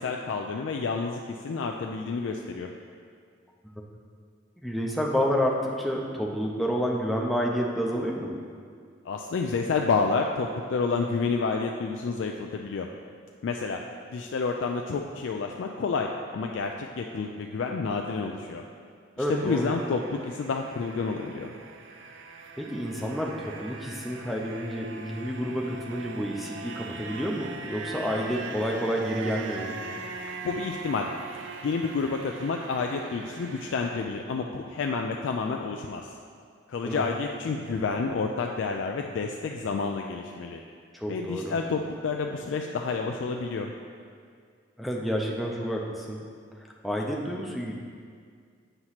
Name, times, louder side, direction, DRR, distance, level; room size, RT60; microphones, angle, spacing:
voice 1, 0.0-2.7 9.0-12.9 13.4-13.8 14.1-18.6 19.3-21.5 30.4-31.1 31.3-36.1 36.7-40.6 41.1-43.7, left 4 dB, 70° left, 2 dB, 0.3 m, -29 dB
voice 2, 4.6-8.3 19.2-19.7 22.6-29.8 36.8-37.0 40.9-41.5 44.8-46.2 46.8-47.7, equal, ahead, -2 dB, 0.5 m, -29 dB
sound 1, 19.2-33.9, right 4 dB, 70° right, 0.4 m, -41 dB
7.9 x 3.0 x 5.7 m, 2.1 s
head